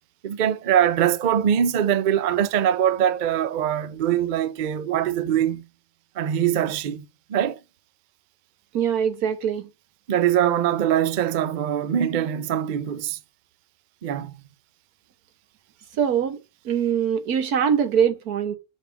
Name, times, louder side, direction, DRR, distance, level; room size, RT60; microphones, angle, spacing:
voice 1, 0.2-5.6 6.2-7.0 7.3-7.6 10.1-13.2 14.0-14.4, right 10 dB, 65° right, 0.4 m, -22 dB
voice 2, 8.7-9.7 16.0-16.4 16.6-18.6, right 8 dB, 85° right, 1.5 m, -22 dB
6.5 x 3.5 x 5.8 m
omnidirectional pair, 1.5 m